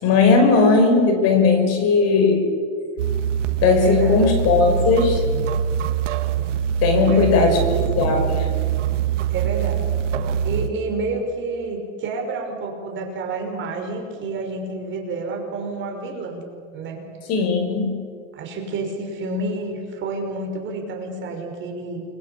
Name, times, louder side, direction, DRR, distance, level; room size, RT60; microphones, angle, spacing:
voice 1, 0.0-2.5 3.6-5.2 6.8-8.5 17.3-17.9, left 4 dB, 40° left, 5 dB, 5.7 m, -17 dB
sound 1, 3.0-10.7, right 8 dB, 80° right, 2.1 m, -23 dB
voice 2, 3.6-4.3 6.9-7.7 9.3-9.9 10.4-16.5 16.7-17.0 18.3-22.0, right 3 dB, 30° right, 2 dB, 6.0 m, -29 dB
28.5 x 23.0 x 8.6 m, 2.3 s
supercardioid pair, 135°, 37 cm